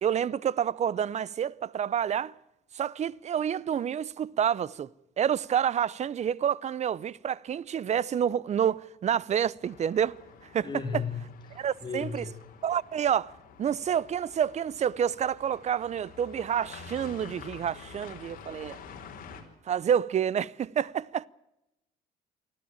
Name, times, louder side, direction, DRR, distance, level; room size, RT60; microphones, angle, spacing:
voice 1, 0.0-2.3 2.7-4.9 5.2-10.1 10.5-10.7 10.9-11.0 11.6-12.3 12.6-13.3 13.6-18.8 19.7-21.3, right 9 dB, 40° right, 0.7 m, -28 dB
sound 1, 9.6-19.4, left 6 dB, 55° left, 5.0 m, -48 dB
voice 2, 10.6-12.4, left 5 dB, 25° left, 3.7 m, -36 dB
25.0 x 14.5 x 8.9 m
cardioid pair, 110°, 17 cm